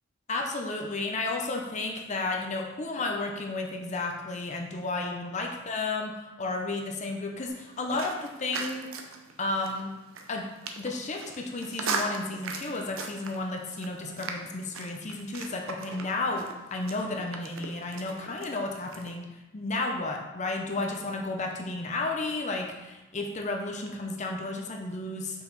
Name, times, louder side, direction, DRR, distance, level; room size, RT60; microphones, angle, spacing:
voice 1, 0.3-8.9 9.4-9.9 10.3-10.4 10.8-19.3 19.5-25.4, left 2 dB, 35° left, 2 dB, 0.6 m, -32 dB
sound 1, 7.5-19.1, right 4 dB, 70° right, 0.7 m, -39 dB
5.7 x 4.6 x 4.0 m, 1.0 s
head